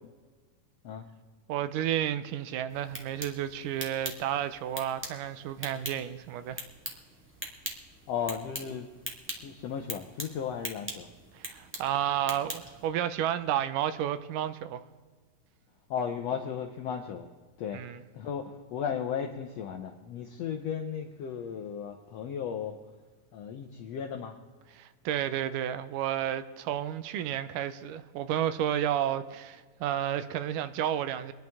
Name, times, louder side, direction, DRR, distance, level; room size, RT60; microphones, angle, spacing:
voice 1, 1.5-6.6 11.3-14.8 17.7-18.0 24.8-31.3, right 10 dB, 80° right, 2.1 m, -31 dB
sound 1, 2.7-12.9, equal, 15° right, 0.4 m, -42 dB
voice 2, 8.1-8.9 9.3-11.1 15.9-17.3 17.6-17.8 18.1-22.8 23.3-24.3, left 7 dB, 80° left, 1.5 m, -35 dB
25.0 x 10.5 x 3.5 m
omnidirectional pair, 3.9 m